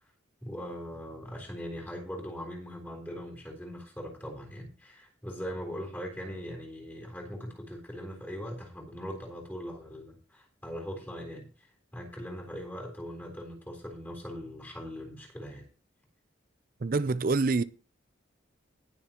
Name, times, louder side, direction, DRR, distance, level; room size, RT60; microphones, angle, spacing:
voice 1, 0.4-15.7, equal, 10° left, 3.7 m, -40 dB
voice 2, 16.8-17.6, right 3 dB, 45° right, 0.4 m, -26 dB
20.0 x 7.1 x 3.0 m
head